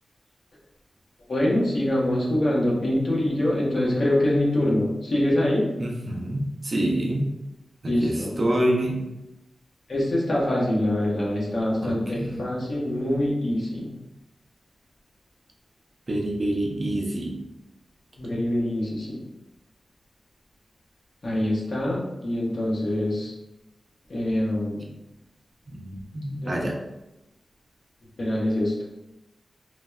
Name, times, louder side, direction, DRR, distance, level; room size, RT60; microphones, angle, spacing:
voice 1, 1.3-5.7 7.8-8.3 9.9-13.8 18.2-19.2 21.2-23.3 24.1-24.8 26.4-26.7 28.2-28.7, left 1 dB, 55° left, -5 dB, 0.7 m, -24 dB
voice 2, 5.8-7.3 7.8-9.0 11.8-12.5 16.1-17.4 25.7-26.8, right 1 dB, 40° right, 0 dB, 0.4 m, -27 dB
3.1 x 2.1 x 2.3 m, 0.95 s
wide cardioid pair, 115°, 0 cm